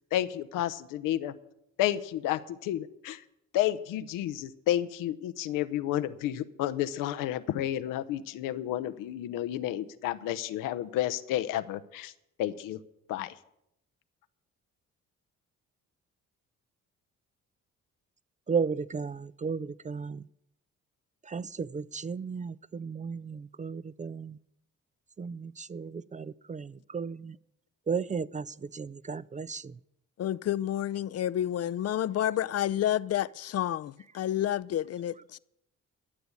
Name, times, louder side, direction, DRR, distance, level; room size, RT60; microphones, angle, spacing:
voice 1, 0.1-1.3 1.8-3.2 3.5-12.1 12.4-12.8 13.1-13.3, left 12 dB, 90° left, 0.8 m, -31 dB
voice 2, 18.5-20.2 21.2-24.4 25.2-27.4 27.9-29.7, right 5 dB, 25° right, 0.4 m, -34 dB
voice 3, 30.2-35.4, left 11 dB, 50° left, 0.5 m, -30 dB
13.5 x 7.0 x 9.6 m
supercardioid pair, 70°, 32 cm